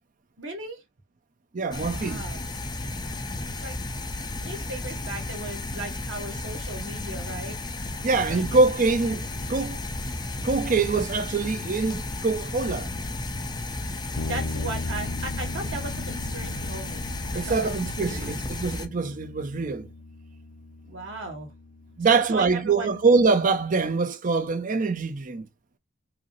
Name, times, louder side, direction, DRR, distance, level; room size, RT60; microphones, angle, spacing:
voice 1, 0.4-0.8 1.9-2.4 3.6-3.8 4.3-7.6 8.1-8.7 9.0-9.1 14.2-17.1 17.3-18.4 20.8-21.5 22.1-23.0, right 2 dB, 75° right, 1.7 m, -37 dB
voice 2, 1.5-2.3 8.0-9.8 10.4-12.9 17.3-19.9 22.0-25.5, right 4 dB, 45° right, 0.5 m, -24 dB
sound 1, 1.7-18.9, left 2 dB, 20° left, 0.6 m, -33 dB
sound 2, 14.2-23.6, left 3 dB, 85° left, 0.6 m, -39 dB
4.9 x 2.0 x 3.0 m
head